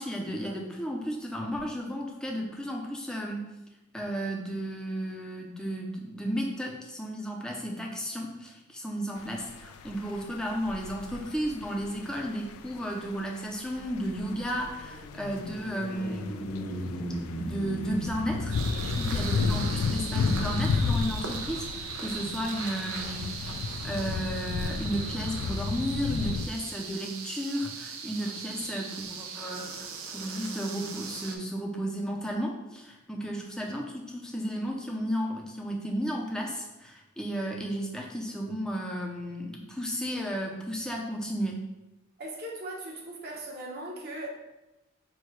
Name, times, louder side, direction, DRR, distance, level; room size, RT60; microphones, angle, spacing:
voice 1, 0.0-3.5 3.9-16.4 17.4-23.4 23.8-41.6, equal, 5° left, -1 dB, 0.5 m, -33 dB
sound 1, 9.2-26.5, left 4 dB, 85° left, 0.3 m, -33 dB
sound 2, 13.1-22.6, equal, 55° left, 1.0 m, -40 dB
sound 3, 18.5-31.4, right 5 dB, 90° right, 0.6 m, -39 dB
voice 2, 42.2-44.3, right 1 dB, 50° right, -2 dB, 0.9 m, -39 dB
4.7 x 2.2 x 4.5 m, 1.0 s
head